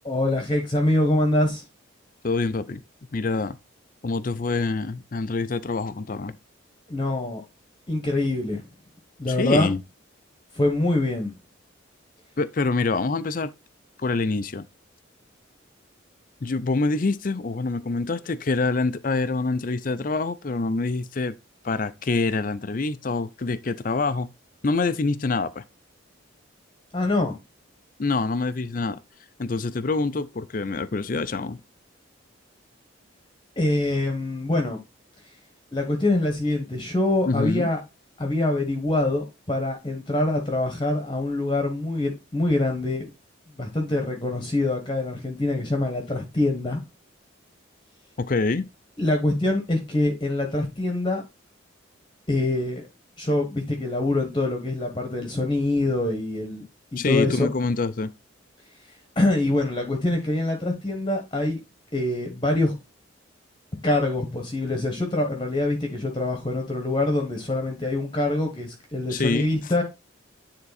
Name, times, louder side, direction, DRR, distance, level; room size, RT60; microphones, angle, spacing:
voice 1, 0.0-1.6 6.9-7.4 7.9-8.6 9.2-9.7 10.5-11.3 26.9-27.3 33.6-34.8 35.7-37.8 38.2-43.1 43.6-46.8 49.0-51.2 52.3-52.8 53.2-56.7 56.9-57.5 59.2-61.6 61.9-62.7 63.8-69.8, left 2 dB, 25° left, 1.2 m, -24 dB
voice 2, 2.2-2.8 3.1-3.6 4.0-6.4 9.3-9.8 12.4-13.5 14.0-14.6 16.4-21.3 21.6-24.3 24.6-25.6 28.0-29.0 29.4-31.6 37.3-37.7 48.2-48.7 57.0-58.1 69.1-69.5, left 3 dB, 40° left, 0.5 m, -26 dB
9.6 x 3.8 x 4.1 m
head